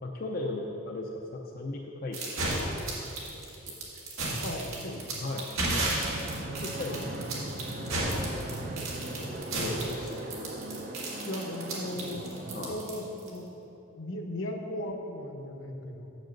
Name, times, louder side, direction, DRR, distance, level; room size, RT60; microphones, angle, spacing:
voice 1, 0.0-2.7 3.7-4.0 5.2-6.0 6.4-10.3 12.5-12.8, left 2 dB, 45° left, 0 dB, 0.5 m, -38 dB
sound 1, 2.1-13.4, right 2 dB, 70° right, 1.9 m, -33 dB
voice 2, 4.4-5.3 11.2-13.5 13.9-16.1, left 1 dB, 65° left, 3 dB, 1.0 m, -37 dB
Fixed-wing aircraft airplane, 5.7-12.7, right 1 dB, 40° right, 0.7 m, -39 dB
7.7 x 6.4 x 6.5 m, 2.9 s
head